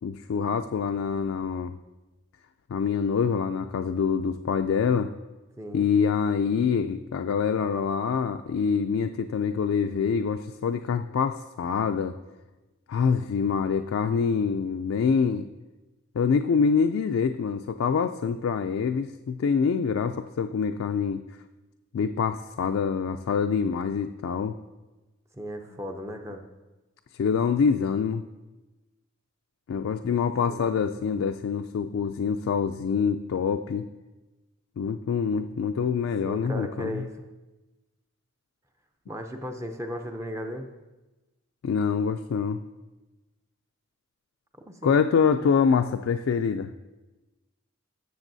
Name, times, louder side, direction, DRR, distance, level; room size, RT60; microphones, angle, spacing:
voice 1, 0.0-1.8 2.7-5.1 5.7-12.1 12.9-15.5 16.2-21.2 21.9-24.6 27.2-28.2 29.7-33.9 34.8-37.0 41.6-42.6 44.8-46.7, left 6 dB, 70° left, 6 dB, 0.3 m, -25 dB
voice 2, 5.6-5.9 25.3-26.5 30.5-30.7 36.2-37.3 39.1-40.7 44.7-45.0, equal, 15° right, 5 dB, 0.4 m, -36 dB
13.5 x 6.9 x 2.6 m, 1.1 s
head